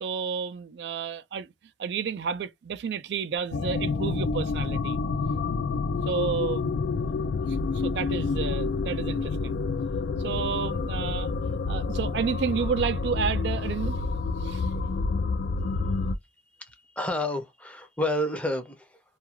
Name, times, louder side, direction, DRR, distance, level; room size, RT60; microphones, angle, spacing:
voice 1, 0.0-1.5 1.8-5.0 5.5-5.6 6.1-9.6 10.2-11.3 11.7-14.0 14.4-14.7, right 6 dB, 60° right, 0.3 m, -31 dB
sound 1, 3.5-16.2, left 4 dB, 55° left, 0.3 m, -28 dB
voice 2, 16.6-19.0, left 1 dB, 5° left, 0.6 m, -30 dB
2.3 x 2.3 x 2.9 m
head